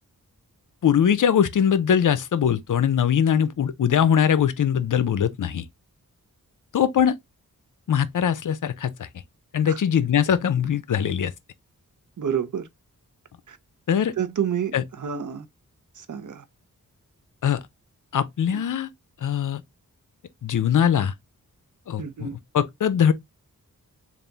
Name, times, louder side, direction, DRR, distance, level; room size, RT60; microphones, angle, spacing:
voice 1, 0.8-5.6 6.7-7.2 7.9-8.9 9.5-11.3 13.9-14.1 14.7-14.8 17.4-17.6 18.1-18.9 19.2-19.6 20.4-21.1 21.9-22.3 22.5-23.1, left 8 dB, 60° left, 0.6 m, -21 dB
voice 2, 12.2-12.7 13.5-13.6 14.2-15.5 15.9-16.4 18.5-18.6 22.0-22.4, right 8 dB, 60° right, 0.7 m, -29 dB
3.5 x 2.5 x 3.9 m
wide cardioid pair, 80°, 35 cm